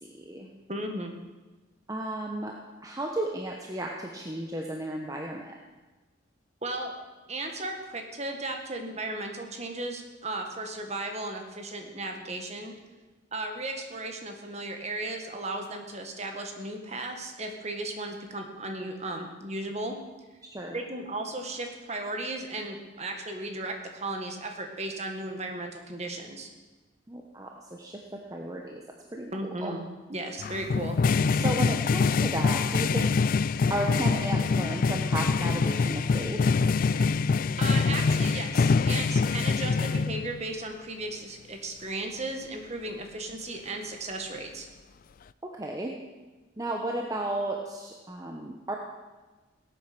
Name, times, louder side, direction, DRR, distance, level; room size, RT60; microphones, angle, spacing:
voice 1, 0.0-0.5 1.9-5.5 20.5-20.8 27.1-28.8 29.1-29.3 29.6-29.7 31.3-33.1 33.7-36.8 45.5-45.9 46.6-48.7, right 1 dB, 20° right, 1 dB, 1.0 m, -34 dB
voice 2, 0.7-1.2 6.6-6.9 7.3-12.7 13.3-20.0 20.7-26.5 29.3-29.8 30.1-31.0 37.0-37.1 37.6-44.7, right 2 dB, 35° right, 4 dB, 1.7 m, -35 dB
sound 1, 30.4-40.5, left 4 dB, 45° left, 0.3 m, -25 dB
18.0 x 8.8 x 6.1 m, 1.2 s
head